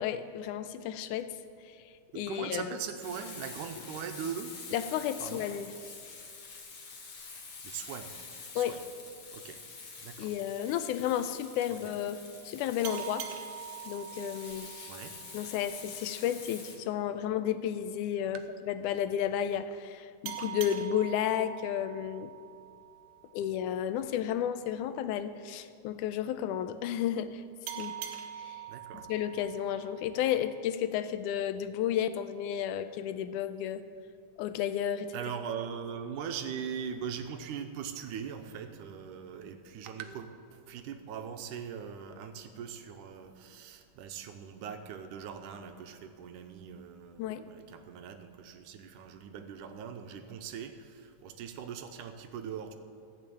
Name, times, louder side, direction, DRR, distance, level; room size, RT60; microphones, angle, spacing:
voice 1, 0.0-2.7 4.7-5.7 8.6-8.8 10.2-13.3 13.9-14.7 15.3-22.3 23.3-28.0 28.3-28.7 29.1-33.8 34.4-35.2 47.2-47.5, left 10 dB, 85° left, 11 dB, 2.1 m, -32 dB
voice 2, 2.1-4.6 5.2-5.5 7.6-8.2 8.5-8.8 9.3-9.6 10.0-10.3 11.9-12.0 14.9-15.2 18.3-18.4 28.7-29.1 35.1-52.8, right 7 dB, 90° right, 7 dB, 2.4 m, -41 dB
Frying (food), 3.0-16.8, left 4 dB, 50° left, 2.0 m, -47 dB
sound 1, 12.8-16.1 20.2-23.5 27.7-30.6, right 10 dB, 70° right, 2.2 m, -44 dB
14.5 x 6.8 x 8.6 m, 2.5 s
omnidirectional pair, 3.6 m